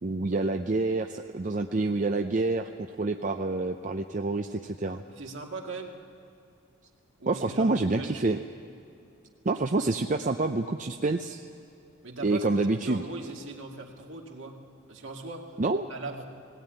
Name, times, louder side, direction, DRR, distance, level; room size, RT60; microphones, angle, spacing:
voice 1, 0.0-2.7 3.0-5.0 7.3-8.4 9.4-11.4 12.2-13.0 15.6-15.9, right 3 dB, 40° right, 5 dB, 0.5 m, -27 dB
voice 2, 5.1-6.0 7.2-8.2 9.8-9.9 12.0-12.6 12.8-14.6 14.9-15.5 15.9-16.3, right 3 dB, 65° right, 1 dB, 2.1 m, -39 dB
19.5 x 16.5 x 9.1 m, 2.6 s
head